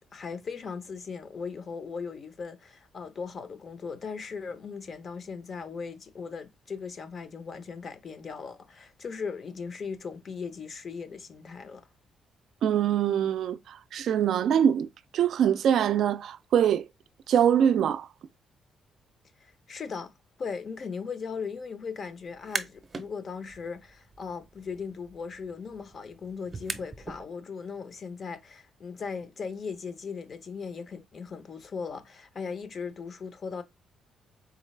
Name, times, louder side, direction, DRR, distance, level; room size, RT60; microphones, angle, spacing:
voice 1, 0.1-11.9 19.4-20.1 20.4-33.6, left 5 dB, 45° left, 0.7 m, -38 dB
voice 2, 12.6-14.9 15.1-16.9 17.3-18.1, right 9 dB, 70° right, 0.3 m, -23 dB
sound 1, 22.3-23.1 23.5-27.2, right 4 dB, 30° right, 0.6 m, -40 dB
3.8 x 3.2 x 3.1 m
cardioid pair, 90°, 0 cm